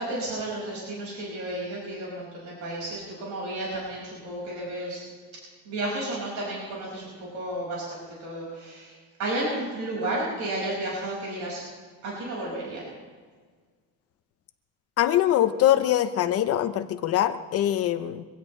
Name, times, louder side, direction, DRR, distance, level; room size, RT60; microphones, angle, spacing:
voice 1, 0.0-5.0 5.6-8.9 9.2-11.6 12.0-12.8, right 1 dB, 65° right, -5 dB, 5.7 m, -32 dB
voice 2, 15.0-18.2, left 12 dB, 50° left, 10 dB, 0.9 m, -23 dB
24.5 x 16.5 x 3.3 m, 1.5 s
cardioid pair, 175°, 31 cm